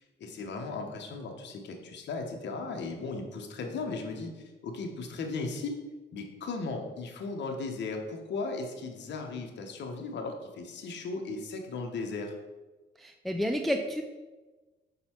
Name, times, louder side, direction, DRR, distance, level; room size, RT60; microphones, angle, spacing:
voice 1, 0.2-5.8 6.1-12.3, left 3 dB, 65° left, 3 dB, 1.0 m, -36 dB
voice 2, 13.0-14.0, equal, ahead, 5 dB, 0.4 m, -30 dB
5.5 x 4.0 x 4.4 m, 1.2 s
cardioid pair, 90°, 20 cm